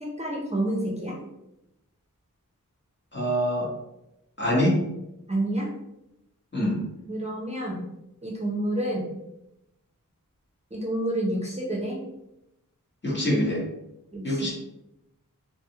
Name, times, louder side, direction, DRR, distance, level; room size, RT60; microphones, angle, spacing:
voice 1, 0.0-1.2 5.3-5.7 7.1-7.9 8.2-9.1 10.7-12.0 14.1-14.5, right 1 dB, 20° right, -3 dB, 0.6 m, -29 dB
voice 2, 3.1-3.7 4.4-4.7 6.5-6.8 13.0-13.6 14.2-14.5, equal, 35° left, -5 dB, 1.0 m, -24 dB
2.6 x 2.3 x 2.8 m, 0.87 s
wide cardioid pair, 45°, 33 cm